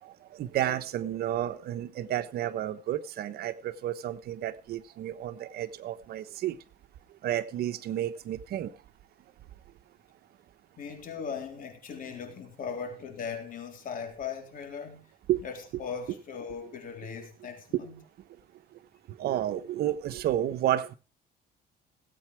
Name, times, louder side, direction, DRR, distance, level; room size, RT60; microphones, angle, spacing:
voice 1, 0.0-6.6 7.2-8.7 15.3-15.4 17.8-17.9 19.1-21.0, right 12 dB, 70° right, 1.2 m, -31 dB
voice 2, 10.8-15.1 15.4-18.0, left 6 dB, 55° left, 3.8 m, -39 dB
17.5 x 8.7 x 4.7 m
cardioid pair, 110°, 17 cm